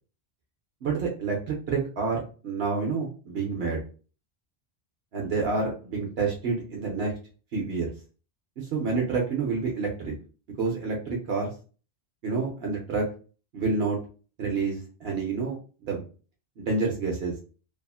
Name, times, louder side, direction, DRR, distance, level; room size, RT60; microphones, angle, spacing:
voice 1, 0.8-3.8 5.1-7.1 7.5-7.9 8.6-10.1 10.6-11.5 12.2-13.1 13.5-14.0 14.4-16.0 16.6-17.3, right 4 dB, 75° right, -1 dB, 0.9 m, -28 dB
2.7 x 2.4 x 2.3 m, 0.37 s
omnidirectional pair, 1.1 m